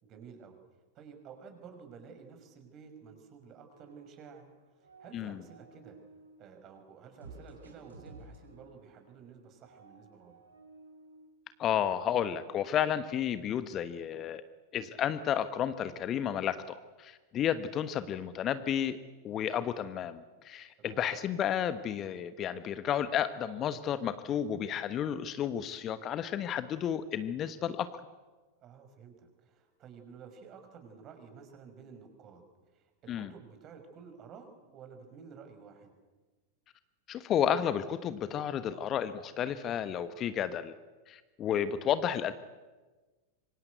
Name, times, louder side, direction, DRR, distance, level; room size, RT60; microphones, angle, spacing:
voice 1, 0.0-0.6 0.9-4.5 4.8-6.0 6.4-10.4 20.8-21.1 28.6-35.9, right 6 dB, 35° right, 6 dB, 5.7 m, -52 dB
sound 1, 3.7-4.5 4.7-6.4 7.2-11.3, right 3 dB, 75° right, 4.4 m, -54 dB
voice 2, 11.6-14.4 14.7-19.0 19.2-28.0 33.1-33.3 37.1-40.7 41.1-42.3, left 9 dB, 30° left, 12 dB, 1.2 m, -32 dB
26.0 x 25.0 x 8.2 m, 1.3 s
figure-of-eight pair, 90°, 0 cm